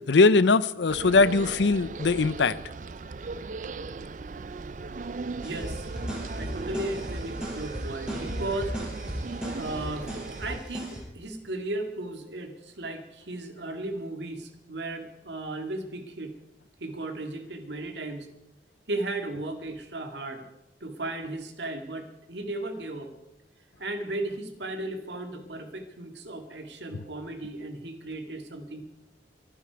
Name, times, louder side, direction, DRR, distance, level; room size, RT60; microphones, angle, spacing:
voice 1, 0.1-2.6, left 3 dB, 80° left, 17 dB, 0.6 m, -21 dB
sound 1, 0.9-10.6, right 3 dB, 45° right, 0.4 m, -38 dB
sound 2, 5.4-11.0, equal, 5° right, 5.2 m, -36 dB
voice 2, 5.4-5.9 6.3-8.7 9.6-16.3 16.8-18.3 18.9-20.4 20.8-23.1 23.8-28.8, right 2 dB, 75° right, 5 dB, 2.0 m, -35 dB
24.5 x 10.0 x 4.7 m, 0.93 s
head